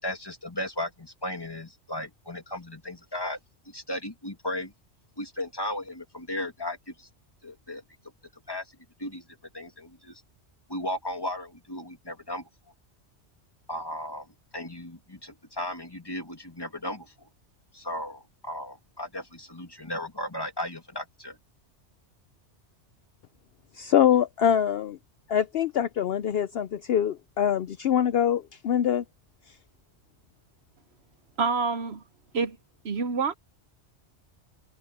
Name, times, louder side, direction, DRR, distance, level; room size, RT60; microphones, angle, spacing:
voice 1, 0.0-3.4 3.6-4.7 5.2-7.1 7.4-7.8 8.5-8.7 9.0-9.2 9.5-10.2 10.7-12.5 13.7-17.3 17.7-21.4, left 1 dB, 20° left, 2.7 m, -35 dB
voice 2, 23.8-25.0 25.3-29.0, left 9 dB, 65° left, 0.8 m, -24 dB
voice 3, 31.4-32.0 32.3-32.6 32.8-33.3, right 4 dB, 65° right, 1.1 m, -27 dB
omnidirectional pair, 1.2 m